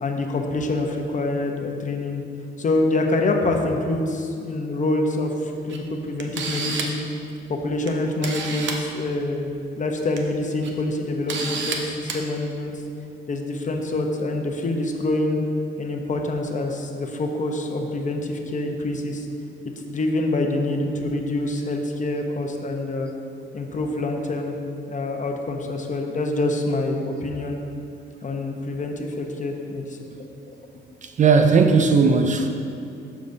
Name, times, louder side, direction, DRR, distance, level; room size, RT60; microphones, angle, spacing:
voice 1, 0.0-2.2 2.6-7.0 7.5-12.7 13.3-15.4 15.8-19.3 19.6-23.1 23.5-24.5 24.9-27.6 28.2-30.3, left 2 dB, 40° left, 3 dB, 0.8 m, -26 dB
Camera, 5.7-5.8 6.2-7.0 7.9-8.0 8.2-8.8 9.9-10.2 10.6-10.7 11.3-11.8 12.1-12.2, right 5 dB, 65° right, 0.8 m, -29 dB
voice 2, 31.0-32.5, right 5 dB, 40° right, 6 dB, 0.5 m, -17 dB
12.0 x 5.0 x 2.7 m, 2.5 s
cardioid pair, 90°, 20 cm